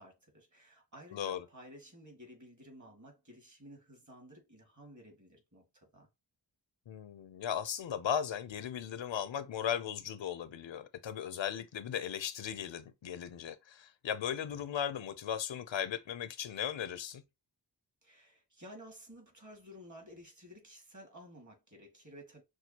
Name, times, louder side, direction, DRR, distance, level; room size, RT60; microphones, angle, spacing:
voice 1, 0.0-6.1 18.0-22.4, equal, 40° right, 2.0 m, -54 dB
voice 2, 1.1-1.5 6.9-17.2, left 9 dB, 85° left, 0.6 m, -37 dB
6.1 x 2.3 x 2.8 m
wide cardioid pair, 45°, 44 cm